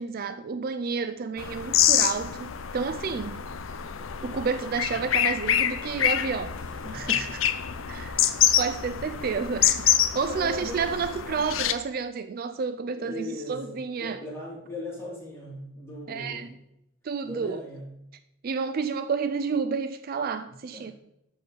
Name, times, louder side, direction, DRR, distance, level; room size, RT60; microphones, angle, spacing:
voice 1, 0.0-3.4 4.2-6.6 6.9-7.4 7.9-8.3 8.6-14.2 16.1-16.5 17.0-17.6 18.4-20.9, right 5 dB, 45° right, 0.4 m, -30 dB
sound 1, 1.4-11.7, left 10 dB, 70° left, 0.6 m, -26 dB
voice 2, 6.6-7.3 10.3-11.0 13.0-16.6 17.2-17.9 20.7-20.9, left 1 dB, 10° left, 4.1 m, -39 dB
8.5 x 6.3 x 5.4 m
head